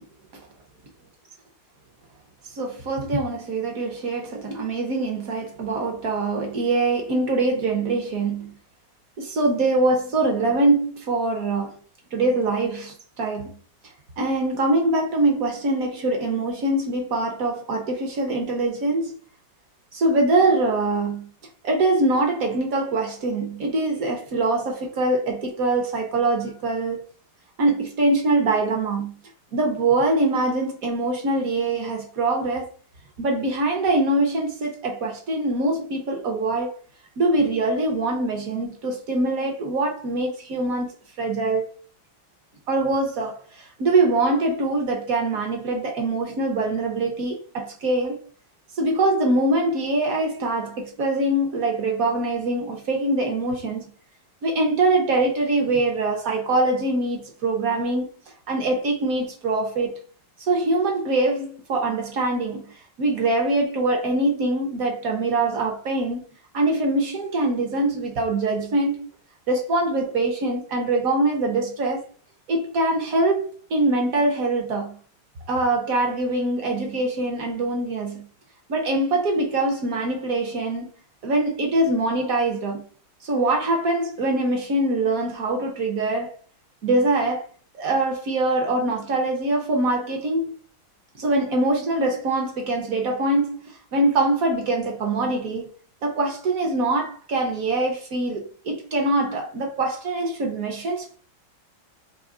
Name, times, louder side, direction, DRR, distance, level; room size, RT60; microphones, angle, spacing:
voice 1, 2.5-8.5 9.2-11.8 12.1-13.6 14.2-19.2 19.9-21.3 21.6-27.0 27.6-29.1 29.5-32.7 33.2-36.8 37.2-40.9 41.2-41.7 42.7-48.2 48.8-53.9 54.4-58.1 58.5-59.9 60.4-62.6 63.0-66.2 66.5-69.1 69.5-72.0 72.5-75.0 75.5-78.3 78.7-80.9 81.2-82.8 83.2-86.3 86.8-87.5 87.7-90.5 91.2-95.7 96.0-101.2, right 2 dB, 65° right, 0.9 m, -23 dB
3.7 x 2.8 x 3.6 m
omnidirectional pair, 2.3 m